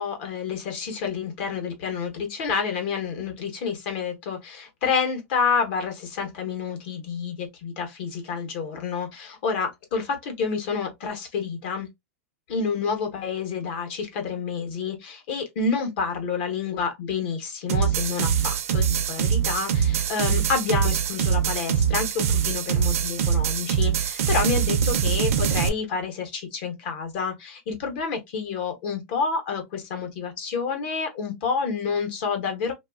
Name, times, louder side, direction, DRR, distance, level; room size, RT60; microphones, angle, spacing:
voice 1, 0.0-11.9 12.5-32.7, left 5 dB, 45° left, 0.8 m, -29 dB
sound 1, 17.7-25.7, right 8 dB, 70° right, 0.5 m, -23 dB
3.1 x 2.3 x 2.2 m
supercardioid pair, 170°, 8 cm